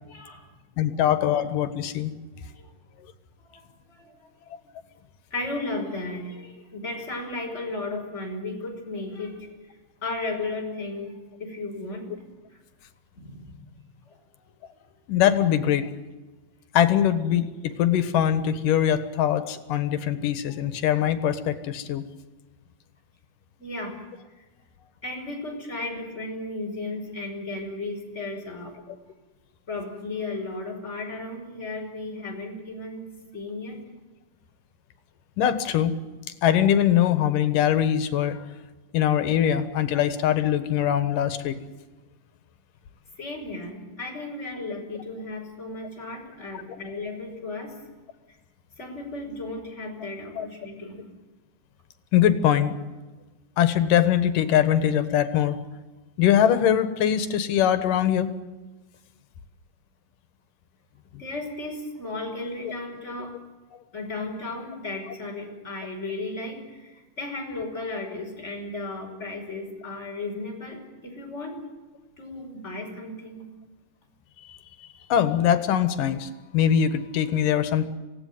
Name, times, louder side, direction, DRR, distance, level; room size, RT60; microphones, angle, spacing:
voice 1, 0.0-0.5 0.7-0.9 2.5-2.7 3.5-4.3 5.3-9.8 10.0-12.1 12.5-12.6 13.1-13.7 14.1-14.2 23.6-24.0 24.4-24.5 25.0-28.8 29.7-33.1 33.3-33.8 43.2-47.8 48.8-51.0 61.2-63.3 63.9-71.6 72.2-73.4, left 2 dB, 20° left, 1 dB, 5.6 m, -35 dB
voice 2, 0.8-2.1 15.1-15.9 16.7-22.0 35.4-35.9 36.4-38.4 38.9-41.6 50.4-50.5 52.1-52.8 53.6-55.6 56.2-58.3 74.4-77.9, left 10 dB, 90° left, 11 dB, 3.0 m, -22 dB
26.0 x 17.5 x 9.4 m, 1.2 s
omnidirectional pair, 3.7 m